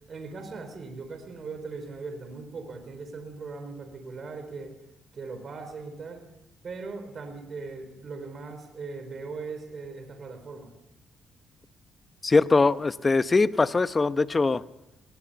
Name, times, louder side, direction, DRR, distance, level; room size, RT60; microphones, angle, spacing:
voice 1, 0.1-4.7 5.1-6.2 6.6-10.7, right 4 dB, 50° right, 7 dB, 4.4 m, -39 dB
voice 2, 12.2-14.6, left 3 dB, 25° left, 14 dB, 0.8 m, -22 dB
20.5 x 19.5 x 7.0 m, 0.88 s
cardioid pair, 90°, 0 cm